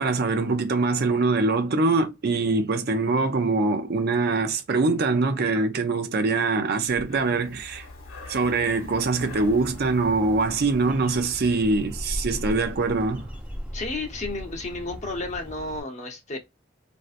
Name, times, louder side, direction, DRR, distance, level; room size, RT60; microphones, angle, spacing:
voice 1, 0.0-7.9 8.3-13.3, right 3 dB, 50° right, 0.5 m, -23 dB
Breathing, 6.7-11.7, left 2 dB, 85° left, 1.0 m, -44 dB
Bird, 9.3-15.8, equal, 5° right, 0.6 m, -38 dB
voice 2, 13.7-16.4, left 2 dB, 35° left, 0.8 m, -32 dB
3.1 x 2.6 x 2.5 m
head